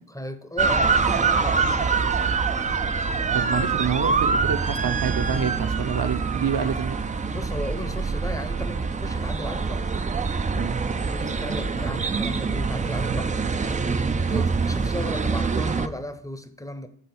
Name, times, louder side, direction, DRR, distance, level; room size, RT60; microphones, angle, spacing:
voice 1, 0.1-2.2 7.3-9.9 11.1-13.9 14.3-16.9, equal, 5° left, 0.7 m, -35 dB
sound 1, 0.6-15.9, right 4 dB, 20° right, 0.3 m, -25 dB
voice 2, 3.3-7.0 10.6-10.8 14.3-14.5, right 7 dB, 45° right, 0.7 m, -27 dB
8.7 x 3.6 x 4.3 m
supercardioid pair, 55°, 47 cm